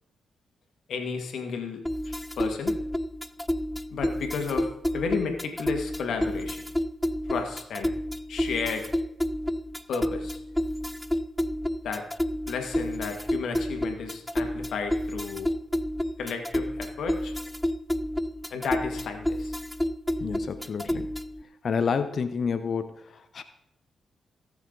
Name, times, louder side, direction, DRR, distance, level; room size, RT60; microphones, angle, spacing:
voice 1, 0.9-2.8 3.9-6.6 7.3-7.9 8.3-8.8 9.9-10.4 11.8-12.0 12.5-15.5 16.2-17.3 18.5-19.6, left 5 dB, 75° left, 4 dB, 2.0 m, -33 dB
sound 1, 1.8-21.4, left 1 dB, 5° left, 0.6 m, -30 dB
voice 2, 20.2-21.1 21.6-23.4, left 6 dB, 60° left, 11 dB, 0.9 m, -29 dB
18.0 x 7.1 x 4.0 m, 0.77 s
supercardioid pair, 60°, 0 cm